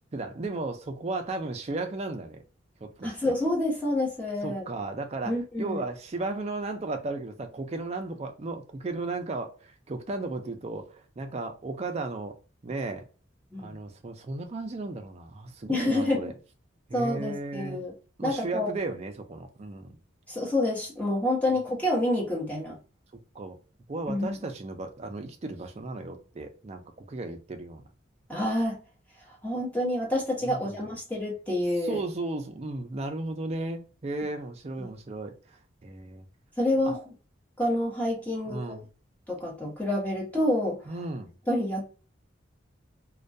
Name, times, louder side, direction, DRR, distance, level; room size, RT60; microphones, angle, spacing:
voice 1, 0.1-2.4 2.8-3.3 4.4-12.4 12.6-13.1 13.6-16.3 16.9-17.8 18.2-20.0 21.5-21.6 23.1-23.6 23.9-27.8 30.4-30.8 31.8-36.3 36.8-36.9 38.5-38.9 40.9-41.4, right 2 dB, 30° right, 0.4 m, -35 dB
voice 2, 3.0-4.6 5.2-5.8 13.5-13.8 15.7-16.2 16.9-17.9 18.2-18.7 20.3-22.8 24.1-24.3 28.3-28.8 29.4-32.0 34.8-34.9 36.6-37.0 37.6-38.6 39.3-40.8 41.5-41.8, left 1 dB, 10° left, 0.8 m, -28 dB
2.2 x 2.2 x 2.5 m
head